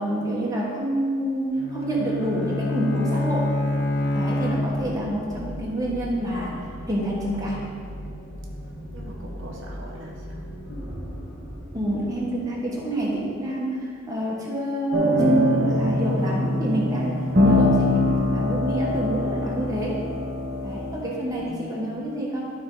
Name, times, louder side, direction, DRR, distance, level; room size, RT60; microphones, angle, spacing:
voice 1, 0.0-3.4 4.1-6.6 6.9-7.6 11.7-20.0 20.6-22.5, right 1 dB, 15° right, -5 dB, 1.3 m, -27 dB
Bowed string instrument, 1.6-5.2, left 2 dB, 55° left, 0.7 m, -26 dB
sound 1, 4.4-13.7, equal, 75° left, 2.0 m, -38 dB
voice 2, 8.9-10.4 21.3-21.9, equal, 75° right, -2 dB, 1.3 m, -42 dB
sound 2, 14.9-20.9, left 1 dB, 50° right, 1.5 m, -22 dB
12.0 x 4.7 x 3.9 m, 2.1 s
head